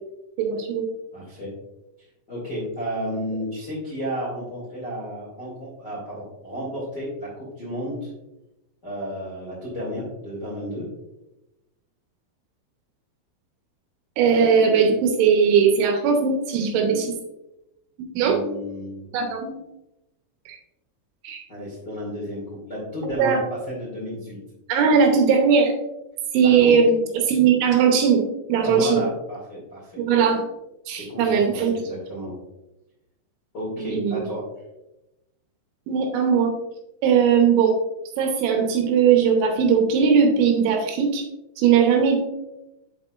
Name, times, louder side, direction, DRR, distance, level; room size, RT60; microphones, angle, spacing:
voice 1, 0.4-0.9 14.2-17.2 18.1-18.4 19.1-19.5 20.5-20.6 21.2-21.4 23.2-23.4 24.7-25.7 26.3-29.1 30.0-30.4 30.9-31.7 33.8-34.3 35.9-36.5 37.0-37.8 38.2-41.2 41.6-42.2, right 6 dB, 75° right, 3 dB, 3.2 m, -19 dB
voice 2, 1.1-1.6 2.3-8.1 8.8-10.9 18.2-19.1 21.5-24.4 26.4-26.8 28.6-30.0 31.0-32.3 33.5-34.4, equal, 35° left, -6 dB, 1.7 m, -32 dB
8.2 x 7.5 x 2.5 m, 0.94 s
omnidirectional pair, 5.7 m